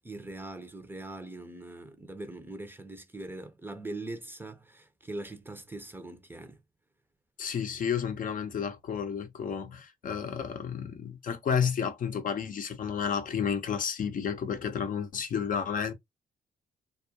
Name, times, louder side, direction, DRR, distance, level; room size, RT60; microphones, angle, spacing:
voice 1, 0.0-6.6, right 2 dB, 15° right, 0.6 m, -41 dB
voice 2, 7.4-15.9, left 7 dB, 55° left, 0.6 m, -31 dB
2.3 x 2.1 x 2.6 m
cardioid pair, 95°, 16 cm